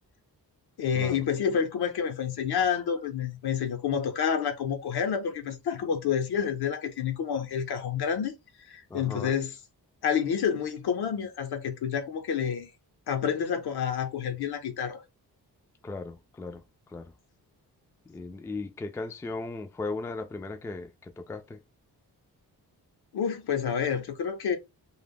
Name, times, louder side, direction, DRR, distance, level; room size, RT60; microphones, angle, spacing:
voice 1, 0.8-8.3 8.7-9.5 10.0-12.7 13.1-15.0 23.1-24.6, left 7 dB, 75° left, 0.8 m, -29 dB
voice 2, 8.9-9.4 15.8-16.6 16.9-17.1 18.1-21.6, left 3 dB, 10° left, 0.3 m, -37 dB
2.3 x 2.1 x 3.5 m
cardioid pair, 90°, 39 cm